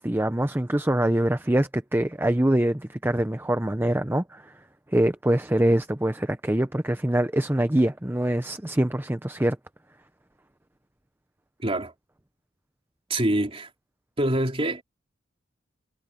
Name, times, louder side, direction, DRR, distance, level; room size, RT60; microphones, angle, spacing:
voice 1, 0.0-4.5 4.9-9.6, right 1 dB, 10° right, 0.7 m, -24 dB
voice 2, 11.6-11.9 13.1-13.7 14.2-14.8, right 1 dB, 30° right, 3.2 m, -25 dB
head